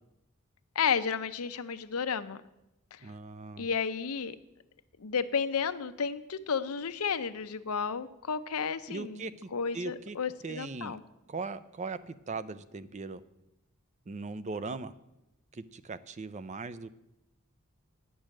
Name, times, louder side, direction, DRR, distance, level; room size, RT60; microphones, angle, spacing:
voice 1, 0.7-2.4 2.9-3.1 3.6-4.4 5.0-11.0, left 6 dB, 85° left, 11 dB, 0.7 m, -32 dB
voice 2, 3.0-3.7 8.9-9.5 9.7-10.2 10.4-11.0 11.3-13.2 14.1-14.9 15.5-16.9, right 3 dB, 35° right, 14 dB, 0.5 m, -39 dB
10.0 x 6.3 x 8.8 m, 0.89 s
head